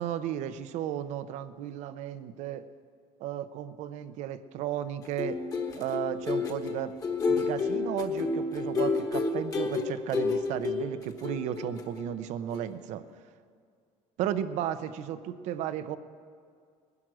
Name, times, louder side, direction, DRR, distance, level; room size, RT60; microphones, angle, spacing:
voice 1, 0.0-2.6 3.2-5.4 5.8-6.9 7.3-13.0 14.2-16.0, right 11 dB, 65° right, 13 dB, 0.7 m, -34 dB
sound 1, 5.0-12.2 12.5-12.7, left 4 dB, 25° left, 1.2 m, -30 dB
20.0 x 11.0 x 6.2 m, 2.2 s
cardioid pair, 165°, 13 cm